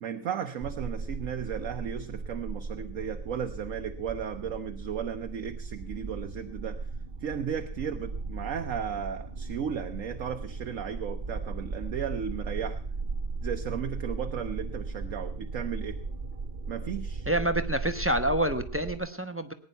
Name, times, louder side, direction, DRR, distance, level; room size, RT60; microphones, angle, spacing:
voice 1, 0.0-6.8 7.2-12.8 13.4-16.0 16.7-17.3, right 8 dB, 65° right, 6 dB, 1.2 m, -35 dB
sound 1, 0.6-19.0, right 3 dB, 40° right, 1.5 m, -37 dB
voice 2, 17.3-19.5, right 1 dB, 10° right, 9 dB, 0.7 m, -27 dB
19.5 x 10.0 x 5.5 m, 0.44 s
omnidirectional pair, 1.6 m